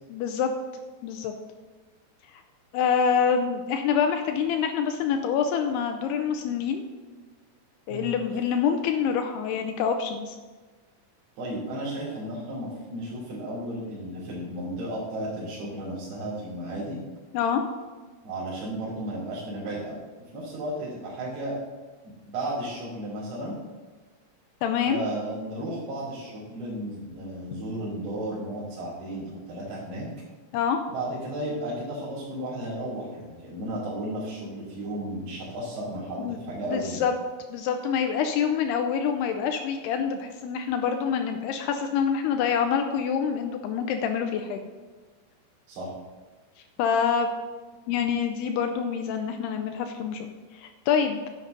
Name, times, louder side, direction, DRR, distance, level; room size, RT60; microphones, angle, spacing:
voice 1, 0.1-0.5 1.0-1.3 2.7-6.8 7.9-10.4 17.3-17.6 24.6-25.0 30.5-30.8 36.2-36.4 36.7-37.1 37.5-44.6 46.8-47.3 47.9-51.2, left 7 dB, 80° left, 6 dB, 2.6 m, -26 dB
voice 2, 11.4-17.0 18.2-20.0 20.3-21.6 22.0-23.5 24.9-30.1 30.9-37.0 45.7-45.9, right 1 dB, 65° right, -8 dB, 5.2 m, -34 dB
10.5 x 9.4 x 3.9 m, 1.3 s
omnidirectional pair, 4.9 m